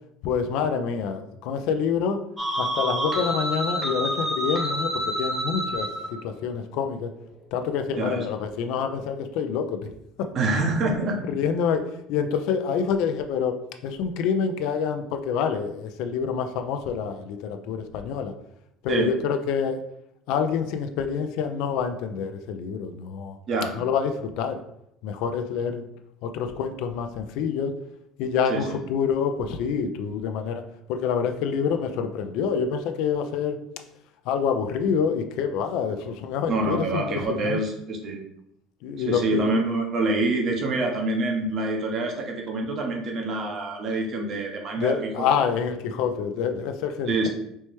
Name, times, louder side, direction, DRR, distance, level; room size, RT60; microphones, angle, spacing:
voice 1, 0.2-2.2 2.6-5.9 6.2-7.1 7.5-9.9 10.2-10.3 10.8-10.9 11.3-11.8 12.1-13.6 13.8-18.3 18.8-19.8 20.3-23.4 23.8-24.6 25.0-25.8 26.2-27.8 28.2-30.6 30.9-33.6 34.3-37.6 38.8-39.4 44.8-47.3, left 6 dB, 70° left, 7 dB, 0.4 m, -27 dB
sound 1, 2.4-6.1, equal, 20° right, 1.0 m, -28 dB
voice 2, 7.9-8.3 10.3-11.2 18.9-19.1 23.5-23.7 28.5-28.8 36.5-38.2 39.1-45.2 47.1-47.3, right 2 dB, 50° right, 2 dB, 0.8 m, -26 dB
4.4 x 2.1 x 3.0 m, 0.77 s
supercardioid pair, 100°, 0 cm